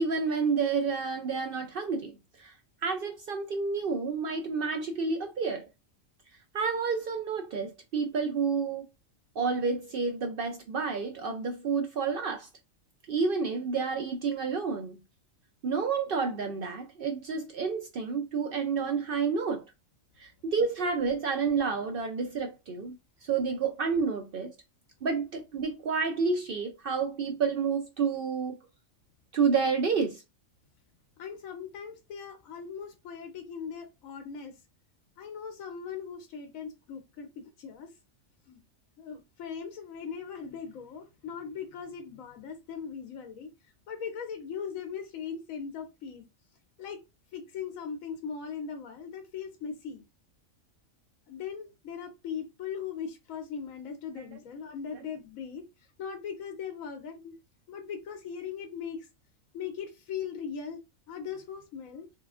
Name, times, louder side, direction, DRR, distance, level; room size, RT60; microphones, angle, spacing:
voice 1, 0.0-2.6 2.8-5.7 6.5-8.9 9.4-12.5 13.1-15.0 15.6-19.6 20.2-23.0 23.2-24.5 25.0-28.6 29.3-30.2, right 5 dB, 65° right, 0.5 m, -29 dB
voice 2, 31.2-34.6 35.2-37.9 38.5-38.6 39.0-43.5 43.9-46.2 46.8-47.0 47.3-50.0 51.3-55.6 56.0-57.4 57.7-59.1 59.5-60.8 61.1-62.1, left 7 dB, 85° left, 1.1 m, -39 dB
3.2 x 2.8 x 2.3 m
omnidirectional pair, 1.4 m